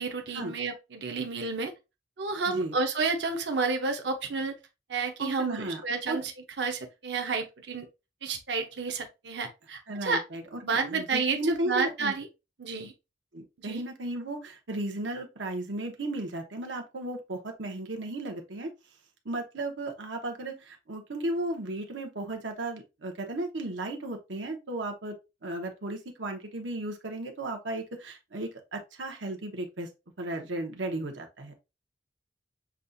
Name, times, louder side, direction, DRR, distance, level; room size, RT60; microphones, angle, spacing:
voice 1, 0.0-1.7 2.2-4.5 4.9-6.3 6.6-7.9 8.2-10.2 10.6-12.3 12.6-12.9 13.6-13.8, right 4 dB, 70° right, 0.8 m, -30 dB
voice 2, 5.2-5.8 6.1-6.2 9.9-10.6 10.9-12.1 13.3-18.7 19.2-25.2 25.4-29.9 30.2-31.6, right 1 dB, 90° right, 1.1 m, -35 dB
7.2 x 2.4 x 2.6 m
head